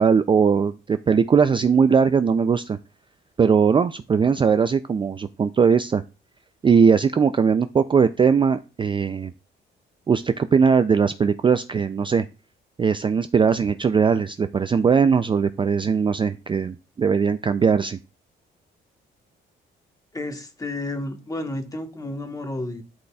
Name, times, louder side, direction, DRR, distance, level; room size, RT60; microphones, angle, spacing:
voice 1, 0.0-2.8 3.4-6.0 6.6-9.3 10.1-12.3 12.8-18.0, right 6 dB, 25° right, 11 dB, 0.3 m, -19 dB
voice 2, 20.1-22.8, left 2 dB, 20° left, 5 dB, 1.3 m, -31 dB
11.5 x 4.0 x 2.3 m, 0.31 s
cardioid pair, 90°, 20 cm